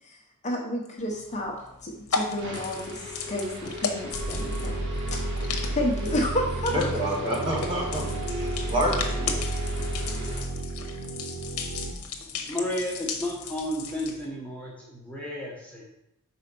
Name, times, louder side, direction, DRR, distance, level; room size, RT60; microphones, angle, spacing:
voice 1, 0.4-1.5 1.8-4.8 5.1-6.7, left 1 dB, 30° left, 0 dB, 0.8 m, -31 dB
sound 1, 1.0-14.2, left 5 dB, 75° left, 0.9 m, -36 dB
sound 2, 2.4-10.4, left 2 dB, 50° right, 1.5 m, -39 dB
sound 3, 4.1-11.9, right 2 dB, 70° right, 0.7 m, -32 dB
voice 2, 6.7-8.9 9.2-9.4, equal, 25° right, -2 dB, 1.6 m, -28 dB
voice 3, 12.5-15.8, left 1 dB, 5° left, -4 dB, 1.0 m, -32 dB
5.5 x 4.2 x 5.3 m, 0.81 s
head